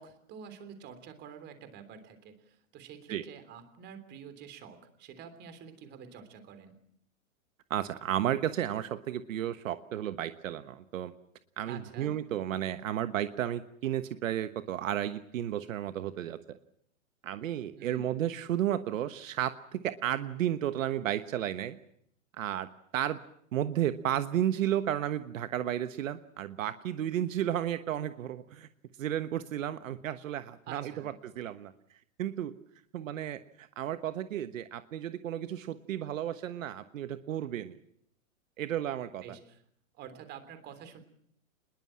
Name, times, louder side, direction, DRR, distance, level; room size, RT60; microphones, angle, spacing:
voice 1, 0.0-6.7 11.7-12.1 17.7-18.1 30.7-31.1 39.2-39.6 39.9-41.0, right 7 dB, 25° right, 10 dB, 3.3 m, -48 dB
voice 2, 7.7-11.1 11.6-16.6 17.2-21.8 22.4-23.2 23.5-28.7 29.0-31.7 32.2-32.5 32.9-37.7 38.6-39.2, right 11 dB, 65° right, 10 dB, 1.3 m, -33 dB
26.5 x 21.0 x 7.5 m, 0.68 s
hypercardioid pair, 155°, 42 cm